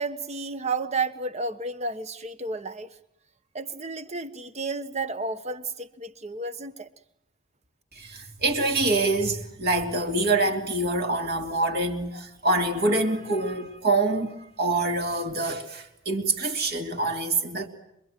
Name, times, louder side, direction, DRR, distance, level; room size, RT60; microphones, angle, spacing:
voice 1, 0.0-3.0 3.5-6.9, right 3 dB, 30° right, 1.2 m, -32 dB
voice 2, 7.9-17.7, right 2 dB, 45° right, 3.2 m, -25 dB
26.5 x 22.5 x 9.3 m
head